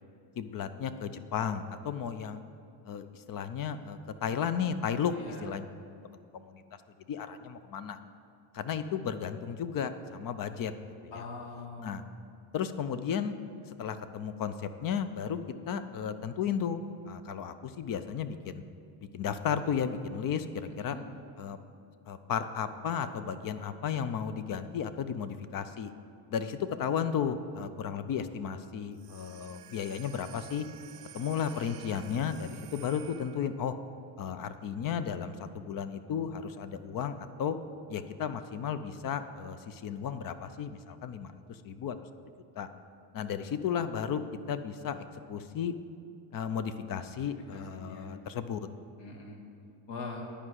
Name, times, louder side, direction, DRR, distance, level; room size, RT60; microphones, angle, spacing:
voice 1, 0.4-2.4 2.8-5.1 5.4-5.7 6.0-6.6 7.1-8.0 8.5-10.7 11.0-11.3 11.8-12.0 12.5-13.4 13.7-15.4 15.7-16.8 17.1-18.6 19.0-21.0 21.4-21.6 22.1-25.9 26.3-30.7 31.1-33.8 34.2-37.6 37.9-42.0 42.6-42.7 43.1-44.2 44.5-45.7 46.3-48.6, left 7 dB, 45° left, 11 dB, 0.6 m, -34 dB
voice 2, 5.1-5.5 11.1-12.1 20.8-21.1 31.4-31.5 47.2-47.3 47.5-48.1 49.0-49.4 49.9-50.2, left 3 dB, 60° left, -1 dB, 2.2 m, -43 dB
sound 1, 28.9-33.7, right 12 dB, 45° right, 0.5 m, -51 dB
10.0 x 4.9 x 8.1 m, 2.4 s
cardioid pair, 100°, 49 cm